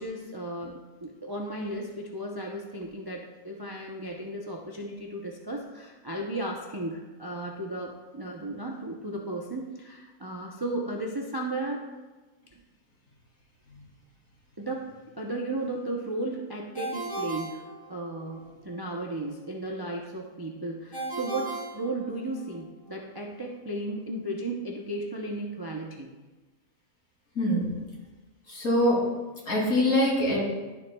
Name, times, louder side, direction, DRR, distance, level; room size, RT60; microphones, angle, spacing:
voice 1, 0.0-11.8 14.6-26.1, right 1 dB, 30° right, -1 dB, 0.4 m, -35 dB
Ringtone, 16.7-18.4 20.9-22.6, right 2 dB, 35° left, 2.8 m, -36 dB
voice 2, 27.3-27.7 28.5-29.0 29.5-30.4, left 1 dB, 75° left, -5 dB, 3.0 m, -23 dB
11.5 x 6.9 x 2.2 m, 1.2 s
omnidirectional pair, 1.5 m